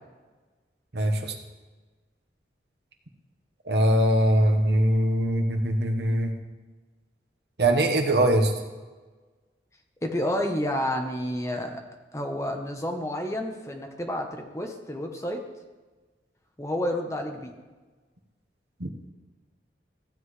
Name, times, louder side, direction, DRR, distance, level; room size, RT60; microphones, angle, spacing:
voice 1, 0.9-1.3 3.7-6.3 7.6-8.5 18.8-18.9, right 1 dB, 70° right, 4 dB, 1.2 m, -22 dB
voice 2, 10.0-11.8 12.1-15.4 16.6-17.5, left 1 dB, 15° left, 3 dB, 0.9 m, -30 dB
15.0 x 7.9 x 3.2 m, 1.3 s
head